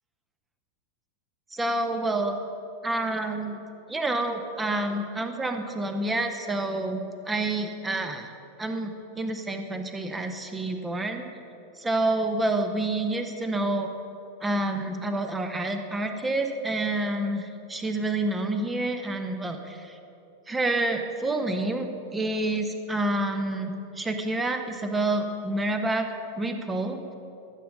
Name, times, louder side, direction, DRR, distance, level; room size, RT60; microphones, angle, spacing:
voice 1, 1.5-2.4 2.8-3.6 3.9-8.3 8.6-11.2 11.8-13.9 14.4-19.9 20.5-26.1 26.4-27.0, right 2 dB, 10° right, 6 dB, 0.8 m, -28 dB
13.0 x 7.0 x 5.3 m, 2.6 s
figure-of-eight pair, 90°, 0 cm